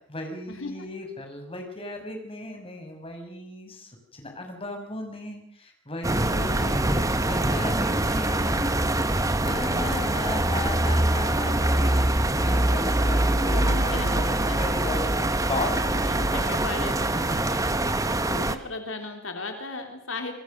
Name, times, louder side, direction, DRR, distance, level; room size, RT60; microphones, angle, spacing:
voice 1, 0.1-8.7 9.4-16.0 16.3-16.4 17.1-17.2 17.5-17.9, left 2 dB, 30° left, 4 dB, 6.3 m, -36 dB
sound 1, 6.0-18.6, right 1 dB, 15° right, 1.3 m, -24 dB
voice 2, 9.6-10.1 13.4-14.6 15.8-17.1 18.2-20.3, left 3 dB, 80° left, 5 dB, 3.4 m, -36 dB
27.0 x 21.0 x 6.7 m, 0.64 s
head